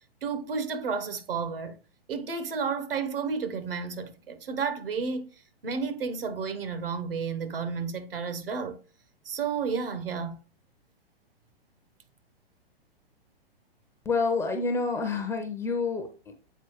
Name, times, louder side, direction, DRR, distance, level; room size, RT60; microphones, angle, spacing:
voice 1, 0.2-1.7 2.1-5.3 5.6-8.8 9.2-10.4, right 5 dB, 65° right, 1.3 m, -31 dB
voice 2, 14.0-16.3, left 4 dB, 10° left, 0.7 m, -28 dB
8.0 x 4.5 x 3.1 m
figure-of-eight pair, 115°, 30 cm